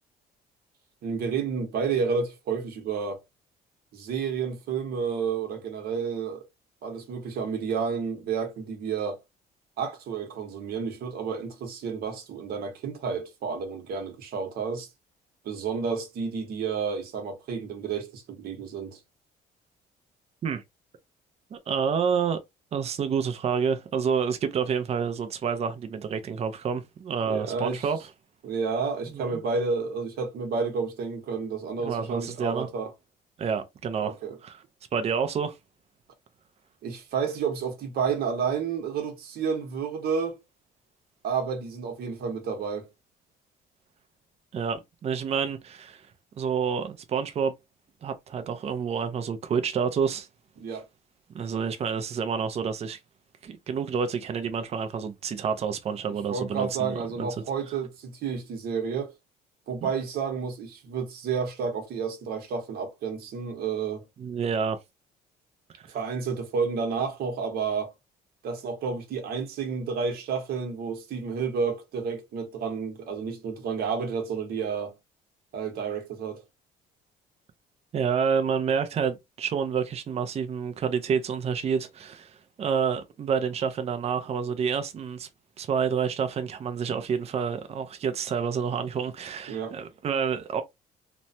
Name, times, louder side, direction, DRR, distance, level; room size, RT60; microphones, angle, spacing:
voice 1, 1.0-3.2 3.9-6.4 6.8-9.2 9.8-14.9 15.4-19.0 27.3-27.9 28.4-32.9 34.0-34.4 36.8-40.4 41.2-42.9 50.6-50.8 56.3-59.1 59.7-64.0 65.9-67.9 68.4-74.9 75.5-76.4 89.5-89.8, right 5 dB, 65° right, 1.0 m, -30 dB
voice 2, 21.5-22.4 22.7-28.0 29.1-29.4 31.8-32.7 33.4-34.1 34.4-34.6 34.9-35.6 44.5-46.0 46.4-47.5 48.0-50.3 51.3-53.0 53.4-57.3 59.8-59.9 64.2-64.8 77.9-85.3 85.6-90.6, right 6 dB, 40° right, 0.5 m, -28 dB
3.0 x 2.2 x 2.6 m
cardioid pair, 110°, 17 cm